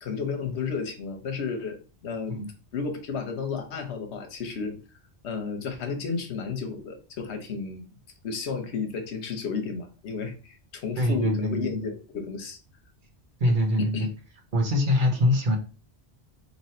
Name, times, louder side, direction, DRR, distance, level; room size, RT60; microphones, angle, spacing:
voice 1, 0.0-1.8 2.0-2.4 2.7-4.8 5.2-7.8 8.2-12.6 13.4-14.1, left 5 dB, 80° left, 6 dB, 1.1 m, -32 dB
voice 2, 11.0-11.7 13.4-14.1 14.5-15.6, left 1 dB, 50° right, 2 dB, 0.9 m, -23 dB
2.9 x 2.9 x 4.2 m, 0.34 s
omnidirectional pair, 1.1 m